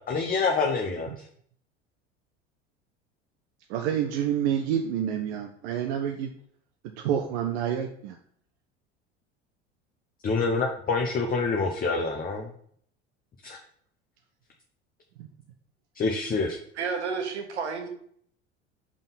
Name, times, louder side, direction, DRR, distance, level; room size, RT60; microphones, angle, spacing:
voice 1, 0.1-1.1 10.2-12.5 13.4-13.6 16.0-16.6, left 4 dB, 25° left, 1 dB, 0.8 m, -26 dB
voice 2, 3.7-6.3 7.0-8.2 15.2-15.3, right 9 dB, 60° right, 4 dB, 0.7 m, -28 dB
voice 3, 16.7-17.9, right 5 dB, 80° right, 4 dB, 1.1 m, -31 dB
5.3 x 3.8 x 5.6 m, 0.63 s
hypercardioid pair, 70°, 34 cm